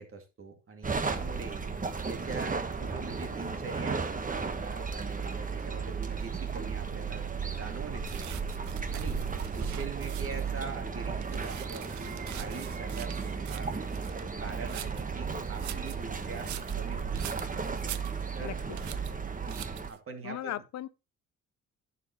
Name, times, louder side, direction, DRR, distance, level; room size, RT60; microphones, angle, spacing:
voice 1, 0.0-1.6 2.1-8.3 8.9-9.2 9.5-11.9 12.3-13.8 14.4-17.6 18.4-18.6 19.5-20.6, right 4 dB, 45° right, 2.4 m, -43 dB
sound 1, 0.8-19.9, right 5 dB, 25° right, 1.3 m, -34 dB
sound 2, 8.0-10.5 11.0-15.1 15.5-18.5 18.8-19.1 19.5-20.0, right 13 dB, 70° right, 0.7 m, -45 dB
voice 2, 18.4-18.8 20.2-20.9, left 13 dB, 65° left, 0.6 m, -37 dB
11.0 x 7.6 x 3.0 m
cardioid pair, 90°, 30 cm